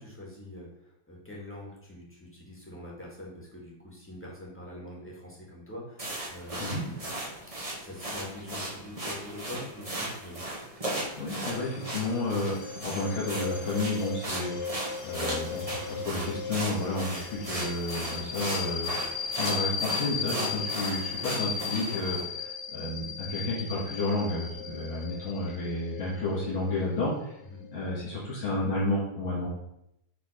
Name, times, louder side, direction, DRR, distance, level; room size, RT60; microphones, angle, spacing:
voice 1, 0.0-7.1 7.8-10.4 27.4-27.6, left 1 dB, 5° left, -4 dB, 2.3 m, -44 dB
sound 1, 6.0-22.2, right 1 dB, 20° right, 1.7 m, -37 dB
voice 2, 11.2-14.6 15.0-27.4 27.7-29.5, left 2 dB, 85° left, -8 dB, 3.2 m, -31 dB
sound 2, 11.4-27.7, left 6 dB, 55° left, 1.4 m, -37 dB
8.2 x 4.4 x 5.2 m, 0.81 s
omnidirectional pair, 2.2 m